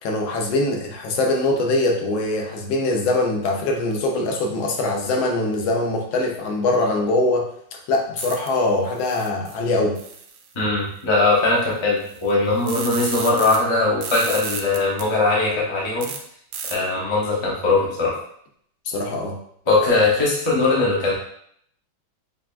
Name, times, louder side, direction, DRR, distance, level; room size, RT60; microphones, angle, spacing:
voice 1, 0.0-10.0 18.9-19.4, left 2 dB, 85° left, 1 dB, 1.4 m, -22 dB
sound 1, 8.2-8.5 9.0-9.6 10.0-10.5 11.6-11.7 12.0-13.6 14.0-15.0 16.0-16.2 16.5-16.8, right 6 dB, 75° right, 1.1 m, -32 dB
voice 2, 10.5-16.1 16.7-18.1 19.7-21.1, left 3 dB, 40° left, -5 dB, 0.4 m, -20 dB
5.8 x 2.2 x 2.4 m, 0.67 s
omnidirectional pair, 2.2 m